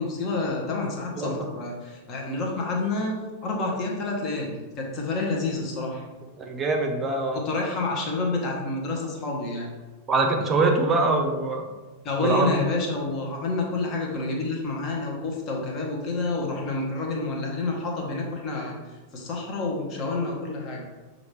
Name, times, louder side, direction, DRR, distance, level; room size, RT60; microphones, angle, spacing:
voice 1, 0.0-3.1 3.4-6.0 7.3-9.7 12.0-18.7 19.1-20.8, left 3 dB, 35° left, -1 dB, 1.0 m, -28 dB
voice 2, 6.4-7.4 10.1-11.6 12.2-12.5, right 3 dB, 20° right, 3 dB, 0.7 m, -23 dB
6.3 x 2.5 x 3.3 m, 1.2 s
figure-of-eight pair, 90°, 0 cm